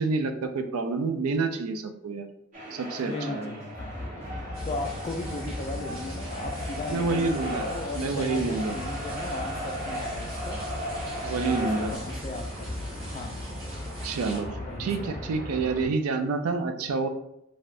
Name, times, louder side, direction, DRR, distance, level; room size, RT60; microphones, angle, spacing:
voice 1, 0.0-2.3 2.7-3.5 6.9-7.7 8.0-8.7 11.3-11.9 14.0-14.5 14.8-17.1, right 4 dB, 90° right, 8 dB, 0.4 m, -28 dB
sound 1, 2.5-12.0, equal, 40° right, 0.8 m, -37 dB
voice 2, 3.0-4.0 4.6-10.6 11.2-13.4 14.3-16.0, left 2 dB, 30° left, 4 dB, 0.3 m, -37 dB
sound 2, 3.7-15.9, left 1 dB, 15° left, 0.8 m, -37 dB
sound 3, 4.5-14.4, right 1 dB, 65° right, 1.2 m, -45 dB
3.2 x 2.6 x 2.4 m, 0.79 s
head